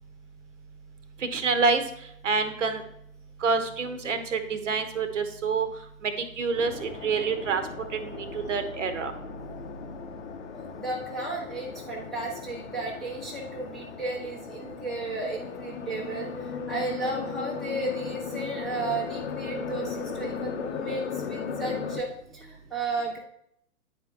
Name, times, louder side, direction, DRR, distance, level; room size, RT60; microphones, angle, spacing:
voice 1, 1.3-1.8 2.2-2.8 3.4-5.7 6.0-7.6 7.9-9.1, right 4 dB, 60° right, 9 dB, 1.0 m, -27 dB
sound 1, 6.5-22.0, left 6 dB, 55° left, 0.8 m, -37 dB
voice 2, 10.5-23.2, right 2 dB, ahead, -5 dB, 0.7 m, -34 dB
9.4 x 4.4 x 3.4 m, 0.72 s
figure-of-eight pair, 120°, 42 cm